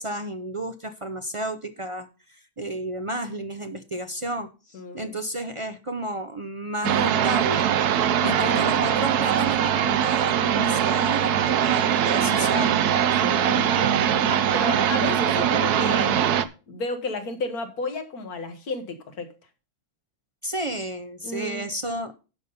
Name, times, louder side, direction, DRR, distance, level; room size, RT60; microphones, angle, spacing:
voice 1, 0.0-7.7 8.2-12.8 20.4-22.2, right 1 dB, 45° right, 8 dB, 0.4 m, -32 dB
voice 2, 4.7-5.1 8.2-8.6 13.2-13.7 14.1-16.3 16.7-19.3 21.2-21.7, left 3 dB, 75° left, 7 dB, 1.9 m, -33 dB
sound 1, 6.8-16.4, right 9 dB, 80° right, 1.2 m, -22 dB
11.0 x 5.5 x 5.5 m, 0.33 s
omnidirectional pair, 1.6 m